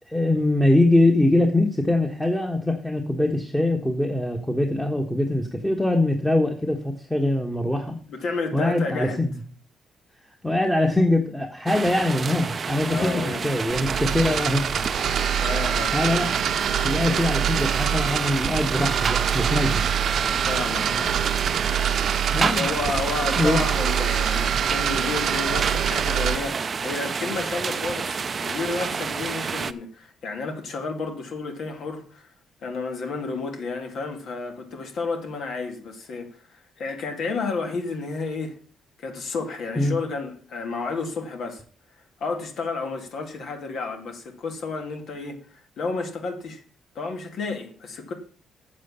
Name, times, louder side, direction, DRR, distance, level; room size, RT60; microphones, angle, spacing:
voice 1, 0.1-8.0 8.5-9.4 10.4-14.9 15.9-16.3 16.8-19.8 22.3-22.7 23.4-23.6 39.8-40.0, left 1 dB, 5° left, 1.4 m, -23 dB
voice 2, 8.1-9.2 12.9-13.4 15.4-16.0 20.5-21.1 22.5-32.3 32.6-36.4 36.8-38.6 39.0-41.6 42.2-46.6 47.0-48.1, left 4 dB, 65° left, 2.1 m, -31 dB
sound 1, 11.7-29.7, right 5 dB, 40° right, 0.6 m, -29 dB
sound 2, 13.7-26.4, right 9 dB, 65° right, 0.9 m, -25 dB
7.8 x 7.5 x 7.0 m
cardioid pair, 90°, 0 cm